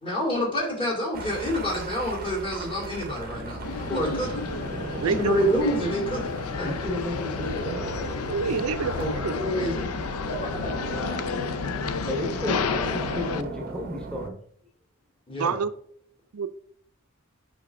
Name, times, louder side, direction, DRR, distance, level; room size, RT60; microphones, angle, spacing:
voice 1, 0.0-4.4 5.0-6.7 9.0-9.9 10.3-10.7 15.3-15.6, equal, 25° left, -3 dB, 2.5 m, -28 dB
sound 1, 1.1-14.3, right 3 dB, 45° right, 0.6 m, -37 dB
sound 2, 3.3-9.1, equal, 40° left, 1.4 m, -42 dB
sound 3, 3.6-13.4, left 5 dB, 90° left, 0.5 m, -31 dB
voice 2, 5.0-5.4 7.4-7.6 8.3-9.3 15.4-15.7 16.3-16.5, right 5 dB, 90° right, 11 dB, 0.5 m, -27 dB
voice 3, 6.6-7.9 8.5-8.6 9.8-10.3 12.1-14.4, left 1 dB, 5° left, 0 dB, 1.2 m, -34 dB
6.6 x 5.3 x 3.6 m, 0.64 s
head